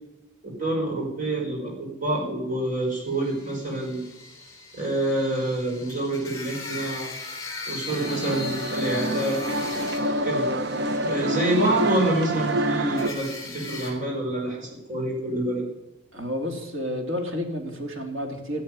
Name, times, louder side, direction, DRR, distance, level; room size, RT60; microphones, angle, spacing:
voice 1, 0.4-4.0 4.7-7.1 7.7-10.5 11.0-15.6, right 1 dB, 40° right, -2 dB, 5.3 m, -27 dB
sound 1, 3.0-13.9, left 3 dB, 15° left, 3.4 m, -40 dB
sound 2, 7.9-13.1, right 1 dB, 55° right, 0.8 m, -27 dB
voice 2, 16.1-18.6, left 1 dB, 75° right, 3 dB, 3.3 m, -30 dB
14.0 x 10.5 x 10.0 m, 0.93 s
head